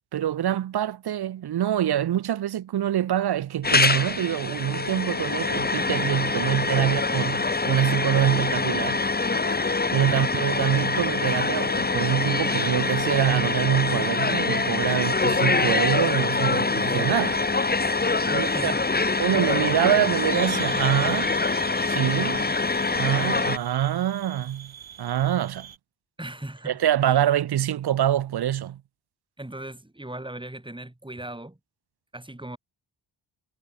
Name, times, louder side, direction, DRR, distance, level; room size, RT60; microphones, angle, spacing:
voice 1, 0.1-9.0 9.9-17.4 18.3-18.7 19.2-21.3 21.8-22.5 22.9-25.7 26.6-28.8, right 11 dB, 55° right, 0.7 m, -25 dB
sound 1, 3.6-23.6, left 3 dB, 20° left, 1.2 m, -25 dB
sound 2, 4.7-16.9, left 6 dB, 55° left, 2.4 m, -45 dB
voice 2, 9.9-10.3 18.2-18.9 26.2-27.3 29.4-31.6 32.1-32.6, right 1 dB, 10° right, 4.4 m, -38 dB
sound 3, 16.5-25.8, right 9 dB, 85° right, 7.5 m, -43 dB
cardioid pair, 65°, 46 cm